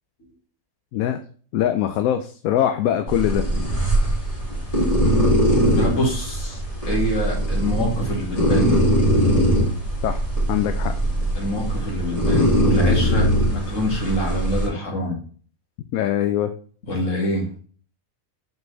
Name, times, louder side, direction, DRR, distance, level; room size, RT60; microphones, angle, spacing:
voice 1, 1.5-3.4 10.0-10.2 10.5-10.9 15.9-16.5, left 11 dB, 85° left, 8 dB, 1.0 m, -22 dB
sound 1, 3.1-14.7, equal, 25° left, 2.2 m, -21 dB
voice 2, 5.7-6.6 6.9-8.8 11.3-15.2 16.9-17.5, equal, 65° left, -1 dB, 2.3 m, -25 dB
6.8 x 4.3 x 3.2 m, 0.43 s
omnidirectional pair, 1.4 m